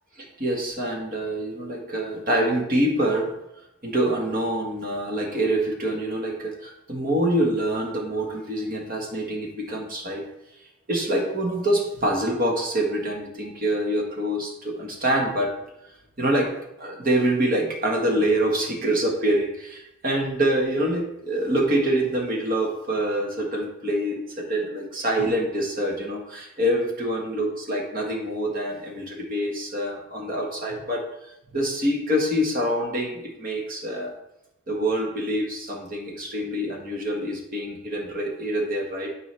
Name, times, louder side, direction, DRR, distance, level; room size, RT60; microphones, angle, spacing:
voice 1, 0.2-3.3 3.8-10.2 10.9-15.5 16.2-16.5 16.8-34.1 34.7-39.1, right 1 dB, 40° right, 0 dB, 1.5 m, -25 dB
12.0 x 4.6 x 3.4 m, 0.87 s
head